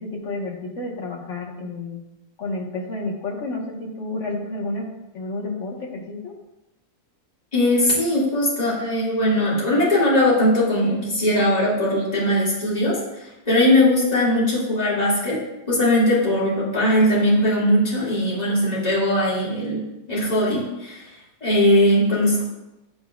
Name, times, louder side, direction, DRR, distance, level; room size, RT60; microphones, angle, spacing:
voice 1, 0.0-2.0 2.4-6.3, left 2 dB, 55° left, -2 dB, 1.6 m, -30 dB
voice 2, 7.5-15.4 15.7-19.8 20.1-21.1 21.4-22.5, left 1 dB, 25° left, -8 dB, 2.4 m, -20 dB
11.0 x 5.7 x 2.4 m, 0.97 s
omnidirectional pair, 1.6 m